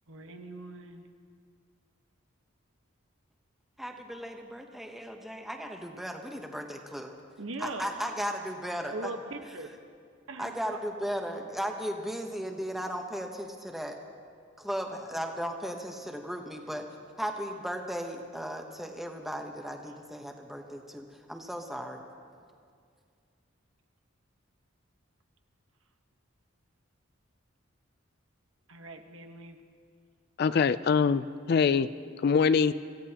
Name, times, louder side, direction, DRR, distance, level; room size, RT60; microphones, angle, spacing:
voice 1, 0.1-1.1 7.4-7.9 8.9-9.7 10.3-10.8 28.7-29.6, right 2 dB, 80° right, 5 dB, 1.2 m, -40 dB
voice 2, 3.8-7.1 7.6-9.1 10.4-14.0 14.6-16.8 17.2-22.0, equal, ahead, 2 dB, 1.0 m, -36 dB
voice 3, 30.4-31.9 32.2-32.7, left 6 dB, 50° left, 15 dB, 0.3 m, -23 dB
25.5 x 15.5 x 2.9 m, 2.2 s
head